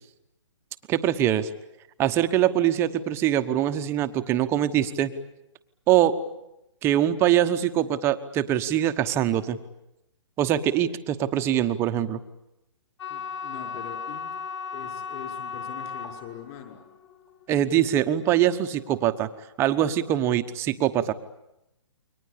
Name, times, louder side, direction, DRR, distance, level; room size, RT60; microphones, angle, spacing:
voice 1, 0.9-1.5 2.0-5.1 5.9-6.2 6.8-9.6 10.4-12.2 17.5-19.3 19.6-21.1, right 11 dB, 15° right, 9 dB, 1.1 m, -23 dB
sound 1, 13.0-19.1, left 6 dB, 65° left, 4.4 m, -37 dB
voice 2, 13.1-14.2 14.7-16.8, left 9 dB, 30° left, 3 dB, 6.0 m, -42 dB
29.0 x 23.5 x 8.6 m, 0.87 s
hypercardioid pair, 155°, 15 cm